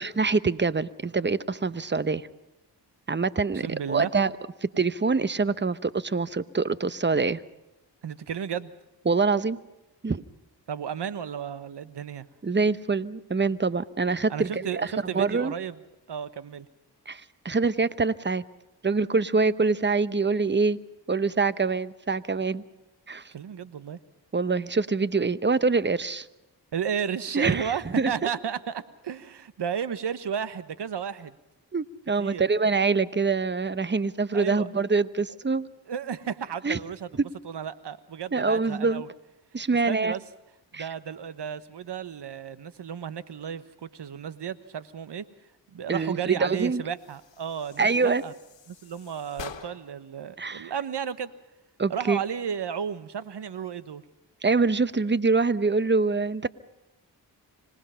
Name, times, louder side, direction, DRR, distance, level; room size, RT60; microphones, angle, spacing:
voice 1, 0.0-2.3 3.1-4.3 4.6-7.4 9.1-9.6 10.0-10.2 12.4-14.9 15.1-15.5 17.1-18.4 18.8-20.8 21.1-22.6 23.1-23.3 24.3-26.3 27.3-28.1 31.7-35.7 36.6-36.8 37.2-37.3 38.3-39.0 39.5-40.2 40.7-40.8 45.9-46.8 47.8-48.2 50.4-50.7 51.8-52.2 54.4-56.5, right 4 dB, 25° right, 15 dB, 0.9 m, -25 dB
voice 2, 3.5-4.1 8.0-8.7 10.7-12.3 14.3-15.8 16.1-16.7 23.3-24.0 26.7-31.3 32.2-32.4 34.3-34.7 35.9-37.1 37.4-39.1 39.6-40.2 40.7-45.2 45.7-48.3 48.7-51.3 51.9-54.0, right 8 dB, 65° right, 14 dB, 1.2 m, -33 dB
sound 1, 46.9-50.1, left 8 dB, 80° left, 1.6 m, -46 dB
25.5 x 19.0 x 5.7 m, 0.98 s
cardioid pair, 45°, 44 cm